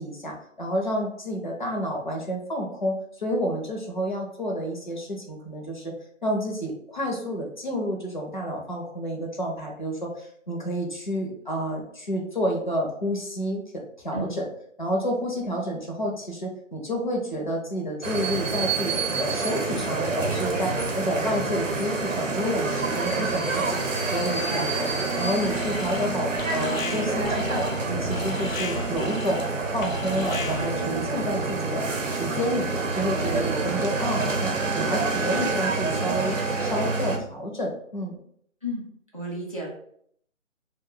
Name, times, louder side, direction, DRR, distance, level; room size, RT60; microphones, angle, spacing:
voice 1, 0.0-5.9 6.2-14.4 14.8-24.9 25.2-29.4 29.7-38.2, equal, 40° left, -1 dB, 0.5 m, -30 dB
sound 1, 18.0-37.2, right 3 dB, 70° right, 0.7 m, -27 dB
Alarm, 25.5-26.1 26.4-30.8, left 3 dB, 85° left, 0.6 m, -36 dB
voice 2, 39.1-39.7, equal, 30° right, -3 dB, 0.4 m, -33 dB
2.5 x 2.2 x 3.7 m, 0.66 s
figure-of-eight pair, 145°, 39 cm